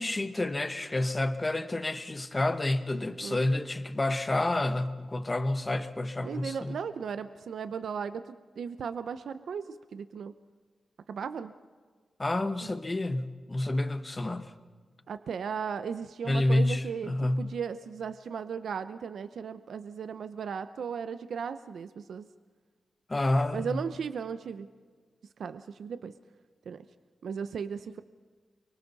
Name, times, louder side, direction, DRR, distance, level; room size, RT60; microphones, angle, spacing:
voice 1, 0.0-6.8 12.2-14.5 16.2-17.5 23.1-23.8, left 2 dB, 20° left, 1.0 m, -29 dB
voice 2, 6.2-10.3 11.1-11.5 12.6-12.7 15.1-17.1 17.4-22.3 23.5-24.7 25.4-26.1 26.7-26.8 27.2-28.0, right 6 dB, 75° right, 0.7 m, -36 dB
29.5 x 23.5 x 4.1 m
wide cardioid pair, 165°, 0 cm